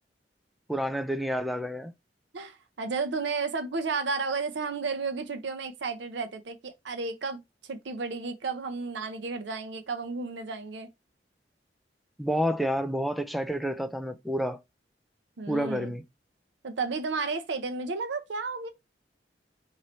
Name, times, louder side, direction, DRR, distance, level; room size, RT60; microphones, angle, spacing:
voice 1, 0.7-1.9 12.2-14.6 15.5-16.0, equal, ahead, 0.3 m, -29 dB
voice 2, 2.3-10.9 15.4-15.9 16.6-18.7, right 4 dB, 80° right, 0.6 m, -33 dB
3.0 x 2.7 x 4.2 m
head